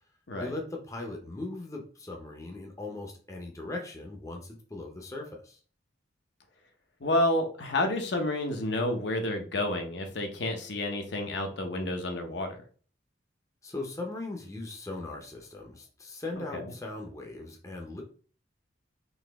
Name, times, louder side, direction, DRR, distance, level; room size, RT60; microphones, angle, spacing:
voice 1, 0.4-5.6 13.6-18.0, left 2 dB, 15° left, 1 dB, 0.6 m, -39 dB
voice 2, 7.0-12.6 16.4-16.7, left 1 dB, 70° left, 4 dB, 0.7 m, -30 dB
4.0 x 2.7 x 3.4 m, 0.41 s
head